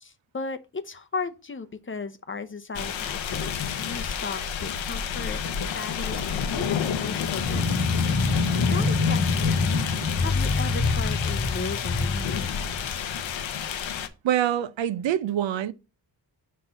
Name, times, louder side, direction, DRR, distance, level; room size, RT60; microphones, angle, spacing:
voice 1, 0.0-6.3 6.5-7.9 8.7-9.7 10.2-12.7, left 4 dB, 25° left, 0.7 m, -36 dB
sound 1, 2.7-14.1, left 8 dB, 75° left, 0.9 m, -30 dB
sound 2, 7.4-13.3, left 3 dB, 50° left, 1.4 m, -25 dB
voice 2, 14.2-15.7, right 11 dB, 75° right, 0.7 m, -25 dB
5.5 x 4.5 x 6.2 m
cardioid pair, 75°, 46 cm